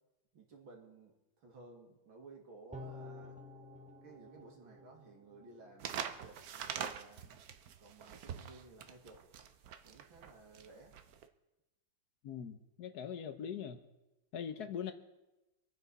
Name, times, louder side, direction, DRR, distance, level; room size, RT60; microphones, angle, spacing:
voice 1, 0.3-3.4 4.0-7.3 7.8-9.2 9.8-10.9 14.4-14.7, right 3 dB, 85° right, 0 dB, 3.2 m, -56 dB
sound 1, 2.7-6.0 6.4-6.5, left 2 dB, 5° right, 0.6 m, -51 dB
sound 2, 5.8-11.2, right 8 dB, 60° right, 1.1 m, -44 dB
voice 2, 12.2-13.8 14.3-14.9, left 8 dB, 60° left, 9 dB, 1.4 m, -41 dB
25.5 x 9.2 x 4.2 m, 1.0 s
omnidirectional pair, 2.1 m